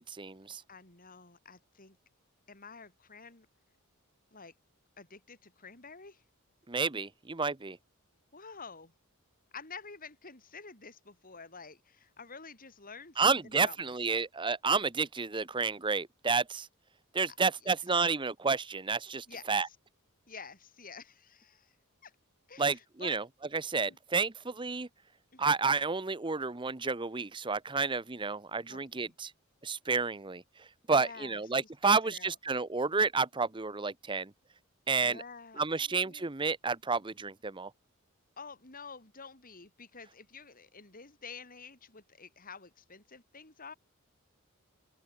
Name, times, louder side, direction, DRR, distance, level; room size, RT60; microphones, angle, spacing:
voice 1, 0.0-0.6 6.7-7.8 13.2-16.7 17.1-19.7 22.6-23.2 23.5-24.9 25.4-29.3 29.6-30.4 30.9-34.3 34.9-35.2 35.6-37.7, right 4 dB, 20° right, 0.8 m, -30 dB
voice 2, 0.7-2.0 2.5-3.5 4.3-4.5 5.0-6.2 8.3-8.9 9.5-14.3 17.3-17.4 17.6-17.7 19.3-19.8 20.3-21.7 22.0-22.1 22.5-23.2 23.9-24.0 25.3-25.6 28.7-29.2 30.9-32.4 35.0-36.3 38.4-43.7, left 5 dB, 40° left, 5.1 m, -49 dB
head